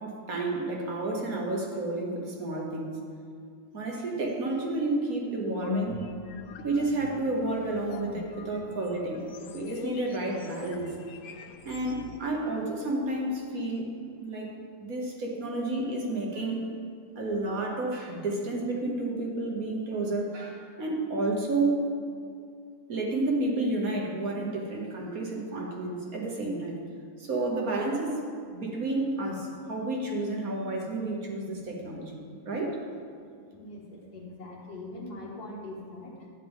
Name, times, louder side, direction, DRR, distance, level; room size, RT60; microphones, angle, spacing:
voice 1, 0.0-3.0 3.7-6.0 6.6-9.3 9.5-10.9 11.6-13.9 14.2-16.6 17.1-21.8 22.9-26.8 27.2-28.2 28.5-32.8, right 2 dB, 45° right, -1 dB, 1.5 m, -31 dB
sound 1, 5.4-12.2, left 5 dB, 85° left, 1.6 m, -41 dB
voice 2, 33.6-36.1, left 2 dB, 45° left, -2 dB, 2.1 m, -42 dB
12.5 x 9.4 x 3.6 m, 2.2 s
omnidirectional pair, 2.4 m